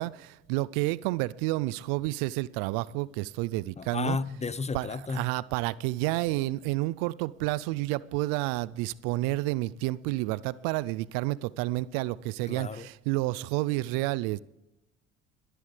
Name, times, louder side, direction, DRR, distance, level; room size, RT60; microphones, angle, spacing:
voice 1, 0.0-4.2 4.7-14.4, right 19 dB, 70° right, 0.6 m, -30 dB
voice 2, 3.8-5.3 12.5-12.9, left 4 dB, 20° left, 0.7 m, -32 dB
21.5 x 11.0 x 3.3 m
hypercardioid pair, 65°, 34 cm